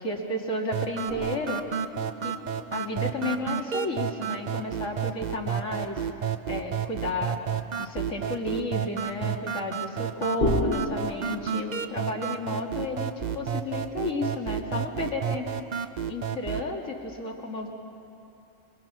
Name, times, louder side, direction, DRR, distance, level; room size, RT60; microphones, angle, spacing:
voice 1, 0.0-1.6 2.2-2.3 2.7-6.0 6.5-7.4 7.8-15.5 16.1-17.7, left 2 dB, 70° left, 0 dB, 2.6 m, -32 dB
sound 1, 0.7-16.7, right 8 dB, 45° right, 0.6 m, -31 dB
sound 2, 1.1-4.5 4.8-4.9 10.4-12.7, left 2 dB, 40° left, 3.3 m, -33 dB
26.0 x 22.5 x 6.1 m, 2.8 s
omnidirectional pair, 1.4 m